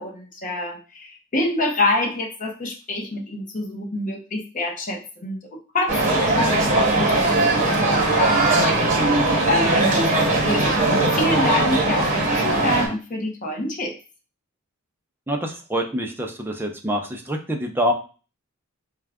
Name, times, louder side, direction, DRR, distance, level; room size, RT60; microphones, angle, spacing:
voice 1, 0.0-9.1 9.5-10.1 10.4-14.0, left 2 dB, 35° left, 0 dB, 0.7 m, -27 dB
sound 1, 5.9-12.9, right 2 dB, 35° right, 1.0 m, -19 dB
voice 2, 15.3-17.9, equal, 10° right, 2 dB, 0.5 m, -26 dB
4.4 x 2.4 x 3.4 m, 0.35 s
head